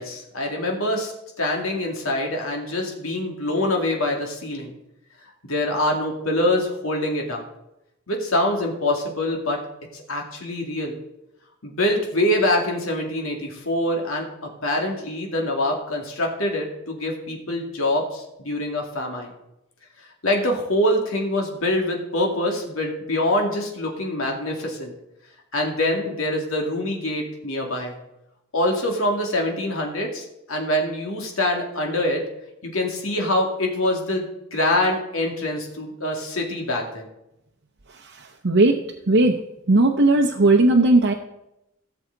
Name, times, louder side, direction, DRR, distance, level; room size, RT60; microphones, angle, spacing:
voice 1, 0.0-4.7 5.4-7.4 8.1-9.6 9.9-11.0 11.6-14.3 14.6-19.3 20.2-24.9 25.5-27.9 28.5-32.2 32.6-37.1, left 1 dB, 85° left, 1 dB, 2.4 m, -25 dB
voice 2, 38.4-38.8 39.1-39.4 39.7-41.1, right 2 dB, 60° right, 1 dB, 0.8 m, -16 dB
17.0 x 7.1 x 4.0 m, 0.86 s
head